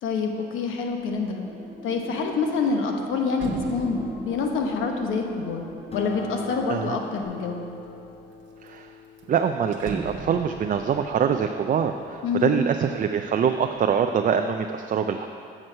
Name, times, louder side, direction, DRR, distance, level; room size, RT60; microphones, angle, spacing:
voice 1, 0.0-1.4 1.8-5.7 5.9-7.6 12.2-12.6, left 4 dB, 85° left, 3 dB, 0.9 m, -26 dB
sound 1, 0.9-1.3 1.7-7.0 7.6-8.3 8.7-8.8 9.0-13.0 13.4-14.0, right 4 dB, 75° right, 0.9 m, -41 dB
sound 2, 1.4-7.2, equal, 10° right, 1.5 m, -42 dB
Acoustic guitar, 5.9-10.8, left 5 dB, 30° left, 1.1 m, -42 dB
voice 2, 9.3-15.3, right 7 dB, 40° right, 6 dB, 0.4 m, -24 dB
7.7 x 6.1 x 5.5 m, 2.6 s
cardioid pair, 90°, 20 cm